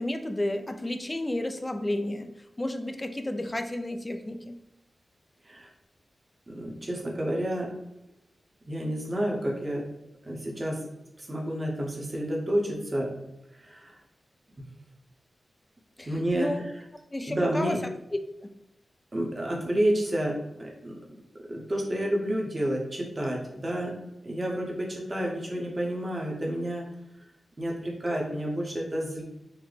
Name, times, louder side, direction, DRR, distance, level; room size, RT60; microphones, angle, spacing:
voice 1, 0.0-4.6 16.0-16.6 17.1-17.9 18.4-18.5, left 1 dB, 20° left, 7 dB, 0.3 m, -32 dB
voice 2, 6.5-7.7 8.6-9.9 10.2-10.8 11.2-13.1 13.6-14.0 14.6-14.7 16.0-16.5 17.3-17.8 19.1-21.0 21.4-24.0 24.2-26.9 27.2-27.3 27.6-29.2, right 1 dB, 30° right, -1 dB, 0.7 m, -30 dB
3.9 x 2.1 x 3.2 m, 0.87 s
wide cardioid pair, 95°, 0 cm